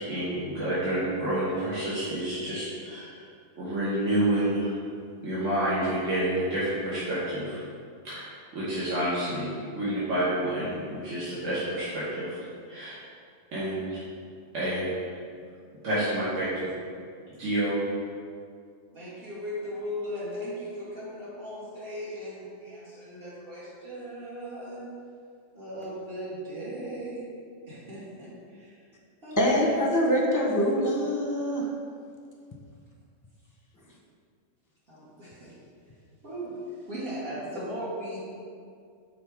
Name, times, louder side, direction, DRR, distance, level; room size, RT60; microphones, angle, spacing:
voice 1, 0.0-3.2 3.6-4.7 5.2-7.6 8.0-12.4 12.7-13.0 13.5-14.0 14.5-15.1 15.8-16.7 17.4-17.8, right 1 dB, 80° right, -11 dB, 1.6 m, -29 dB
voice 2, 18.9-24.9 25.5-27.3 27.7-28.3 29.2-29.4 34.9-35.5 36.2-36.6 36.9-38.2, equal, 55° right, -8 dB, 1.6 m, -37 dB
voice 3, 29.4-31.7, equal, 20° left, -2 dB, 0.7 m, -24 dB
5.8 x 3.8 x 4.7 m, 2.2 s
omnidirectional pair, 1.3 m